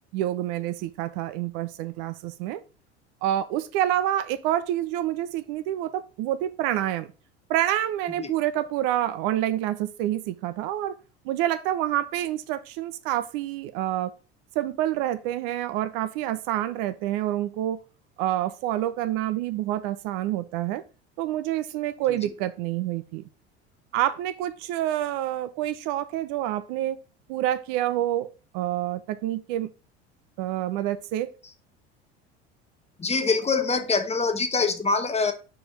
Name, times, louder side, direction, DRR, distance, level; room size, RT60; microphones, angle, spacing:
voice 1, 0.1-2.6 3.2-7.1 7.5-11.0 11.2-14.1 14.5-17.8 18.2-20.8 21.2-23.2 23.9-27.0 27.3-28.3 28.5-29.7 30.4-31.3, right 13 dB, 60° right, 0.8 m, -27 dB
voice 2, 33.0-35.3, left 4 dB, 20° left, 1.2 m, -24 dB
5.1 x 4.8 x 5.8 m
hypercardioid pair, 80°, 33 cm